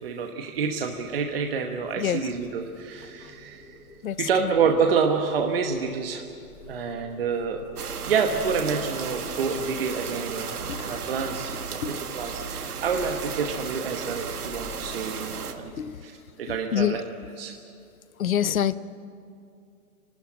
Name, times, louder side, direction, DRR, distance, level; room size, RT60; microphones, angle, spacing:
voice 1, 0.0-3.6 4.2-6.3 6.7-7.7 8.0-15.7 16.0-16.1 16.4-17.0 17.4-17.5, right 5 dB, 40° right, 3 dB, 1.1 m, -28 dB
sound 1, 0.5-15.6, left 2 dB, 25° left, 4.2 m, -49 dB
voice 2, 4.0-4.5 10.7-10.8 11.8-11.9 15.8-16.0 16.7-17.0 18.2-18.7, left 10 dB, 65° left, 16 dB, 0.9 m, -25 dB
sound 2, 7.8-15.5, right 6 dB, 85° right, 1.9 m, -34 dB
sound 3, 10.5-13.1, left 1 dB, 45° left, 7.9 m, -51 dB
27.5 x 12.5 x 8.8 m, 2.4 s
hypercardioid pair, 175°, 44 cm